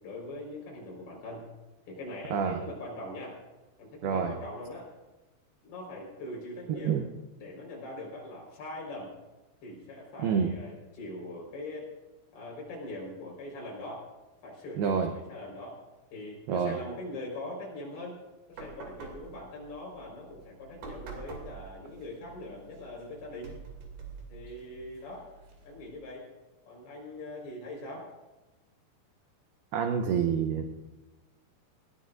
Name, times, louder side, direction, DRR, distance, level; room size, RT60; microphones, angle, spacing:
voice 1, 0.0-1.5 1.9-3.4 3.8-4.9 5.6-7.0 7.4-9.1 9.6-11.9 12.3-14.1 14.4-15.8 16.1-18.2 18.5-23.5 24.3-25.2 25.6-26.2 26.7-28.1, left 1 dB, 55° left, -2 dB, 6.2 m, -42 dB
voice 2, 4.0-4.3 6.7-7.0 10.2-10.5 14.8-15.1 16.5-16.7 29.7-30.7, right 7 dB, 80° right, 5 dB, 2.3 m, -27 dB
sound 1, 18.5-26.0, right 4 dB, 60° right, 4.1 m, -47 dB
20.0 x 16.5 x 2.5 m, 1.1 s
omnidirectional pair, 5.5 m